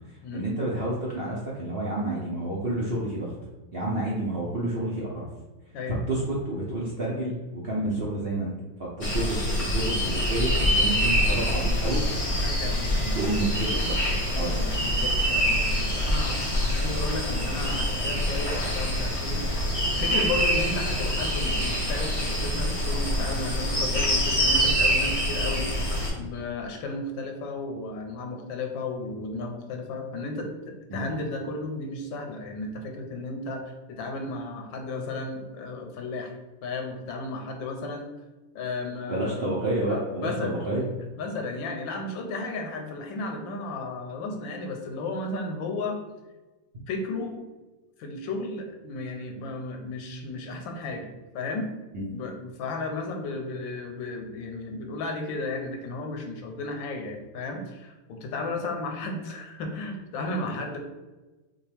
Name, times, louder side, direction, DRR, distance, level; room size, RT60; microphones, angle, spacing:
voice 1, 0.3-3.3 3.7-5.3 6.1-8.5 8.8-12.0 13.1-14.6 30.9-31.1 39.1-40.9 51.9-52.1, right 1 dB, 55° right, -5 dB, 0.6 m, -29 dB
sound 1, 9.0-26.1, equal, 30° left, 0.6 m, -25 dB
voice 2, 12.3-13.3 14.4-19.7 20.0-36.3 36.6-38.1 38.5-39.5 39.9-40.5 40.8-40.9 41.2-46.0 46.9-47.4 48.0-51.1 51.3-51.7 52.1-60.8, left 2 dB, 90° left, 3 dB, 1.5 m, -34 dB
5.8 x 2.4 x 3.4 m, 1.1 s
omnidirectional pair, 2.0 m